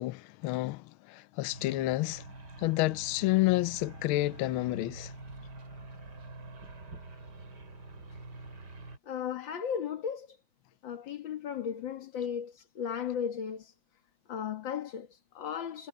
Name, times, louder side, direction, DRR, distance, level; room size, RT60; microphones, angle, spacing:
voice 1, 0.0-2.2 2.6-5.1, left 18 dB, 80° left, 1.4 m, -29 dB
sound 1, 1.5-9.0, right 2 dB, 50° right, 3.9 m, -46 dB
voice 2, 9.1-10.4 10.8-13.7 14.3-15.9, left 8 dB, 65° left, 2.3 m, -36 dB
omnidirectional pair, 2.3 m